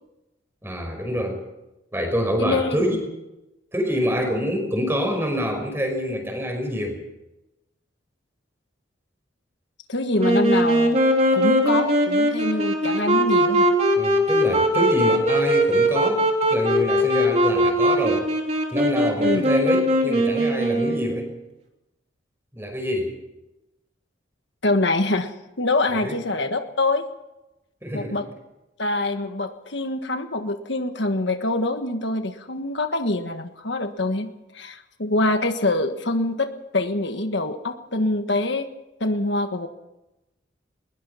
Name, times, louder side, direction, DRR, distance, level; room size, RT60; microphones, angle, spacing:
voice 1, 0.6-1.4 1.9-3.0 3.7-7.0 14.0-16.2 16.5-18.3 18.7-21.3 22.5-23.2 25.9-26.2 27.8-28.2, equal, 10° right, 4 dB, 5.5 m, -26 dB
voice 2, 2.4-2.8 9.9-11.0 11.3-13.7 19.2-19.5 24.6-27.0 27.9-28.3 28.8-34.3 34.5-38.7 39.0-39.7, left 2 dB, 65° left, 7 dB, 1.5 m, -25 dB
Wind instrument woodwind instrument, 10.2-21.3, equal, 35° right, 3.2 m, -20 dB
21.5 x 21.0 x 5.8 m, 0.93 s
head